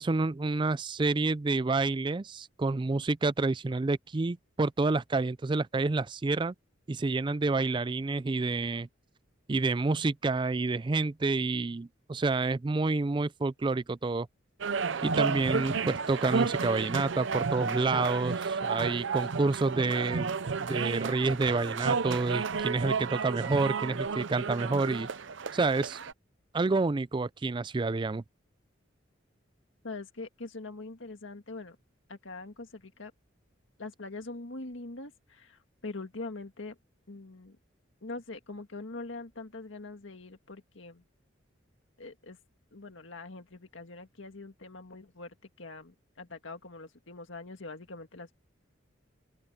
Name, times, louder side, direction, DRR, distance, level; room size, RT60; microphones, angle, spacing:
voice 1, 0.0-6.5 6.9-8.9 9.5-14.3 15.0-20.3 20.6-25.1 25.5-26.0 26.5-28.2, right 3 dB, 25° right, 0.4 m, -29 dB
sound 1, 14.6-26.1, right 5 dB, 70° right, 0.6 m, -32 dB
voice 2, 29.8-31.8 32.1-33.1 33.8-36.8 37.1-37.6 38.0-41.0 42.0-42.4 42.7-48.3, left 3 dB, 75° left, 1.8 m, -43 dB
open air
head